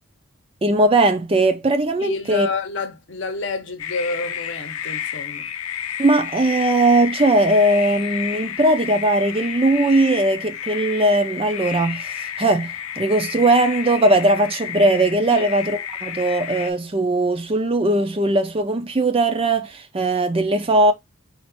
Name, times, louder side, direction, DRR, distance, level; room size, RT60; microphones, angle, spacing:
voice 1, 0.6-2.5 6.0-20.9, right 2 dB, 25° right, 0.5 m, -19 dB
voice 2, 2.0-5.5 15.3-15.5, left 4 dB, 55° left, 0.8 m, -29 dB
sound 1, 3.8-16.7, left 9 dB, 85° left, 0.6 m, -31 dB
4.2 x 2.5 x 4.3 m
head